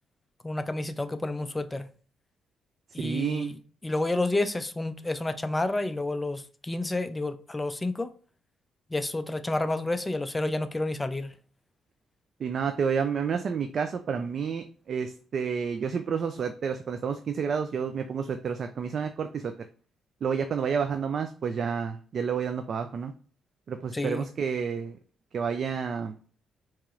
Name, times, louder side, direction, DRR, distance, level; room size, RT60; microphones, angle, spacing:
voice 1, 0.4-1.9 2.9-3.5 3.8-8.1 8.9-11.3 23.9-24.3, left 2 dB, 15° left, 0.4 m, -30 dB
voice 2, 3.0-3.5 12.4-19.5 20.2-23.1 23.7-25.0 25.3-26.2, right 6 dB, 55° right, 0.3 m, -30 dB
4.5 x 2.9 x 2.4 m
cardioid pair, 90°, 0 cm